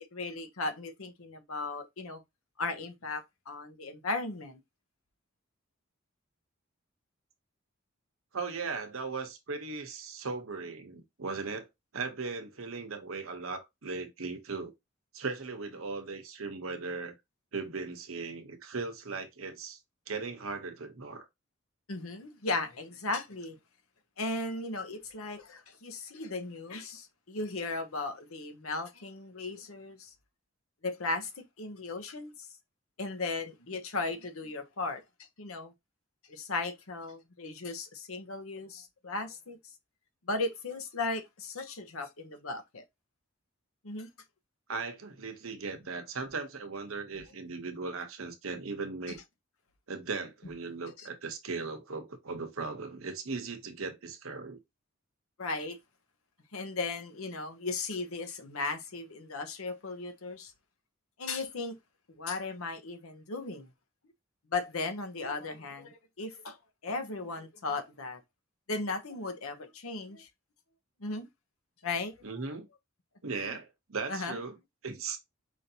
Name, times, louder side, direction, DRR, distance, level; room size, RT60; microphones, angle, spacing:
voice 1, 0.2-2.2 2.6-4.6 21.9-23.6 24.2-30.1 30.8-32.5 33.0-35.0 35.4-35.7 36.3-39.6 40.3-42.8 43.8-44.1 51.0-51.1 55.4-55.8 56.5-60.5 61.2-61.8 62.1-63.7 64.5-66.6 66.8-68.2 68.7-70.3 71.0-71.3 71.8-72.1 73.3-73.6 74.1-74.4, left 3 dB, 85° left, 0.9 m, -36 dB
voice 2, 8.3-11.7 11.9-14.7 15.1-17.2 17.5-19.8 20.1-21.3 44.7-49.2 49.9-54.6 72.2-72.7 73.2-74.5 74.8-75.2, right 4 dB, 80° right, 0.9 m, -38 dB
4.9 x 2.6 x 2.7 m
head